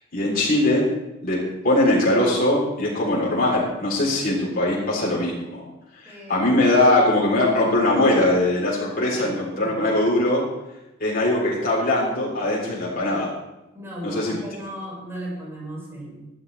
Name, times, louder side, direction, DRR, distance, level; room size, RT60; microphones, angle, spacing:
voice 1, 0.1-0.8 1.2-1.4 1.6-5.6 6.1-10.4 11.0-13.3 14.0-14.4, left 1 dB, 50° left, -5 dB, 3.7 m, -21 dB
voice 2, 6.1-6.5 9.2-9.3 9.6-9.7 13.7-16.3, equal, 15° right, -6 dB, 5.6 m, -36 dB
18.5 x 12.0 x 3.4 m, 0.97 s
head